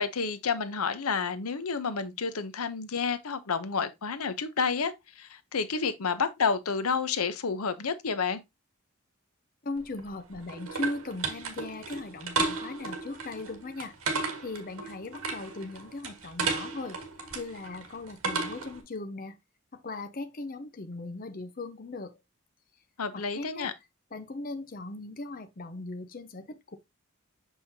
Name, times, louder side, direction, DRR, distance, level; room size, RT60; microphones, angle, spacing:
voice 1, 0.0-8.4 23.0-23.7, left 5 dB, 90° left, 0.8 m, -30 dB
voice 2, 9.6-17.0 17.3-19.4 19.7-22.2 23.1-23.7 24.1-26.8, left 2 dB, 40° left, 0.6 m, -38 dB
sound 1, 9.8-18.8, right 4 dB, 80° right, 1.7 m, -34 dB
6.3 x 5.5 x 2.7 m
head